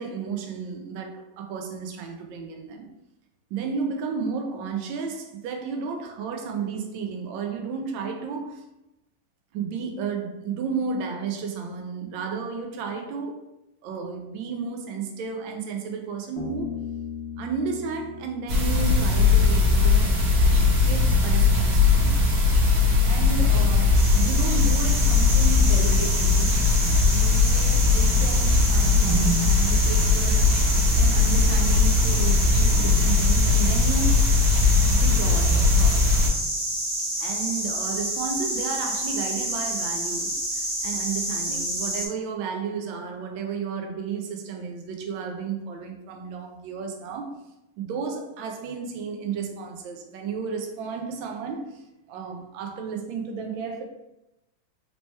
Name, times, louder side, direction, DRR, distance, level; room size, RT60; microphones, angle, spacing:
voice 1, 0.0-2.9 3.5-8.6 9.5-13.4 13.8-16.8 17.4-22.2 23.0-26.7 27.1-30.6 30.9-34.2 34.9-36.1 37.2-47.4 47.8-53.8, right 5 dB, 75° right, 1.3 m, -33 dB
Bass guitar, 16.4-19.9, left 7 dB, 70° left, 1.5 m, -38 dB
High Pink Noise, 18.5-36.3, left 3 dB, 50° right, 1.4 m, -19 dB
sound 1, 23.9-42.1, right 1 dB, 20° right, 1.2 m, -29 dB
4.4 x 2.9 x 3.2 m
omnidirectional pair, 2.3 m